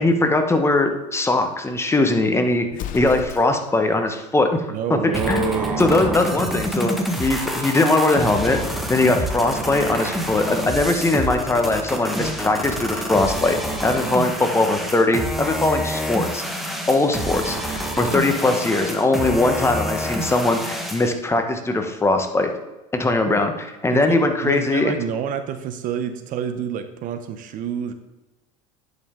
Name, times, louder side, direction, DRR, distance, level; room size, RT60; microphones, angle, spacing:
voice 1, 0.0-2.7 2.9-4.6 5.3-5.5 5.8-16.4 16.9-22.5 22.9-23.5 23.8-25.0, left 2 dB, 15° left, 6 dB, 1.2 m, -20 dB
Explosion, 2.7-3.8, left 9 dB, 50° left, 0.6 m, -34 dB
voice 2, 4.7-5.9 23.3-23.4 23.9-27.9, right 7 dB, 50° right, 9 dB, 0.9 m, -28 dB
sound 1, 5.1-21.1, equal, ahead, 1.4 m, -27 dB
10.5 x 5.5 x 3.7 m, 1.1 s
hypercardioid pair, 90°, 17 cm